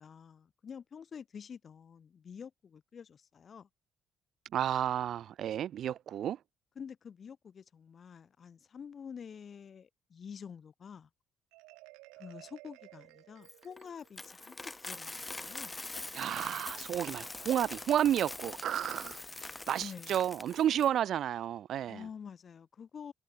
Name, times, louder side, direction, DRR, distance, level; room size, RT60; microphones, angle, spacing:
voice 1, 0.0-3.7 6.8-11.1 12.1-15.8 19.8-20.2 21.9-23.1, left 7 dB, 50° left, 4.5 m, -48 dB
voice 2, 4.5-6.4 16.1-22.0, right 10 dB, 65° right, 0.8 m, -31 dB
Marimba xylophone, 11.5-14.3, right 25 dB, 80° right, 2.9 m, -55 dB
Coin (dropping), 13.4-20.9, left 2 dB, 20° left, 2.1 m, -43 dB
hypercardioid pair, 45°, 0 cm